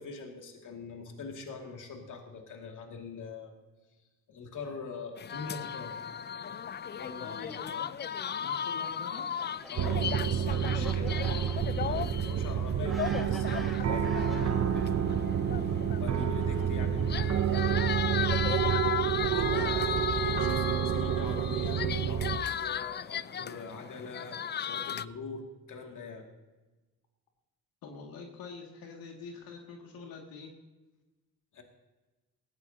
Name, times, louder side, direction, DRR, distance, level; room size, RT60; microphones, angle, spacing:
voice 1, 0.0-3.6 4.3-5.9 7.0-7.3 9.7-15.2 16.0-17.5 18.8-18.9 19.3-26.3 31.5-31.6, left 4 dB, 60° left, 2 dB, 2.5 m, -43 dB
sound 1, 5.2-25.1, left 8 dB, 30° left, 0.4 m, -36 dB
voice 2, 7.2-8.0 8.4-9.3 27.8-30.5, left 4 dB, 85° left, 1 dB, 2.3 m, -45 dB
Fowl, 7.9-14.9 15.7-17.7, equal, ahead, 2.8 m, -49 dB
sound 2, 9.8-22.4, right 8 dB, 50° right, 0.8 m, -29 dB
18.5 x 15.0 x 2.9 m, 1.1 s
cardioid pair, 90°, 35 cm